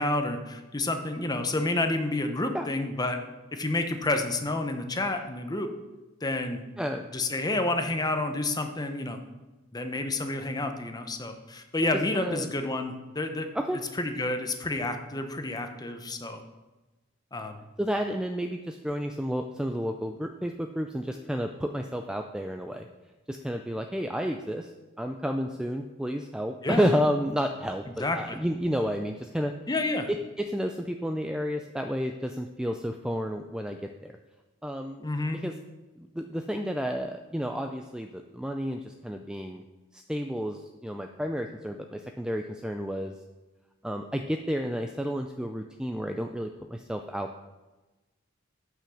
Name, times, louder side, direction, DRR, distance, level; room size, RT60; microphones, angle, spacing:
voice 1, 0.0-3.2 3.5-5.7 6.2-6.6 7.1-9.2 9.7-13.5 14.0-16.4 17.3-17.6 26.6-26.8 28.0-28.4 29.7-30.1 35.0-35.4, left 2 dB, 20° left, 6 dB, 0.8 m, -29 dB
voice 2, 6.8-7.1 12.1-12.5 13.5-13.8 17.8-22.9 23.3-24.7 25.0-29.5 30.1-34.1 34.6-35.1 35.4-35.6 36.0-39.6 39.9-43.2 43.8-47.4, equal, 5° right, 5 dB, 0.3 m, -31 dB
8.8 x 5.8 x 6.3 m, 1.1 s
head